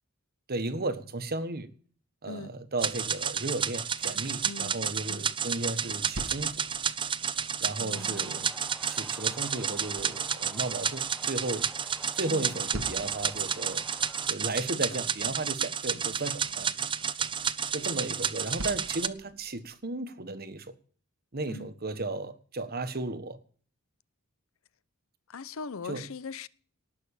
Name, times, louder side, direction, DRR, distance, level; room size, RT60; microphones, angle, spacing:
voice 1, 0.5-1.7 2.2-6.6 7.6-8.5 8.9-11.7 12.1-13.8 14.3-16.7 17.7-20.7 21.3-23.4 25.8-26.0, right 2 dB, 45° right, 1.4 m, -34 dB
sound 1, 2.8-19.1, right 7 dB, 20° right, 0.6 m, -31 dB
voice 2, 4.4-4.7 5.1-5.2 7.8-8.5 12.3-12.5 14.7-14.8 15.9-16.2 21.5-21.7 25.3-26.5, left 4 dB, 65° left, 0.7 m, -41 dB
sound 2, 5.9-19.8, right 1 dB, 65° right, 1.4 m, -48 dB
sound 3, 7.9-14.3, equal, ahead, 0.9 m, -49 dB
18.5 x 6.4 x 8.4 m
head